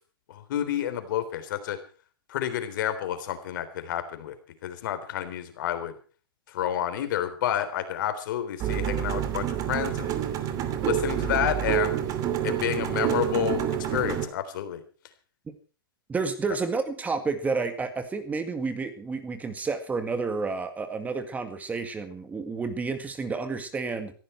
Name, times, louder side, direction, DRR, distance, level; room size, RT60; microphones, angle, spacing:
voice 1, 0.3-1.8 2.3-4.3 4.6-5.9 6.5-10.2 10.8-12.0 12.4-14.8, left 10 dB, 60° left, 10 dB, 3.7 m, -29 dB
sound 1, 8.6-14.3, right 11 dB, 30° right, 2.7 m, -28 dB
voice 2, 16.1-24.1, right 4 dB, 15° right, 9 dB, 1.9 m, -30 dB
18.0 x 15.0 x 4.5 m, 0.39 s
hypercardioid pair, 130°, 12 cm